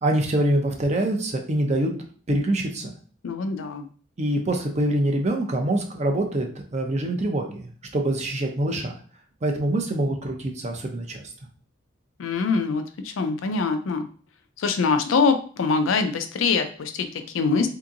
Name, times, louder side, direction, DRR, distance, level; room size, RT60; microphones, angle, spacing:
voice 1, 0.0-1.9 2.3-2.9 4.2-8.9 9.4-11.2, right 1 dB, 35° right, 3 dB, 0.6 m, -25 dB
voice 2, 3.2-3.9 12.2-14.1 14.6-17.7, left 4 dB, 85° left, 7 dB, 0.5 m, -24 dB
3.5 x 2.8 x 2.5 m, 0.43 s
head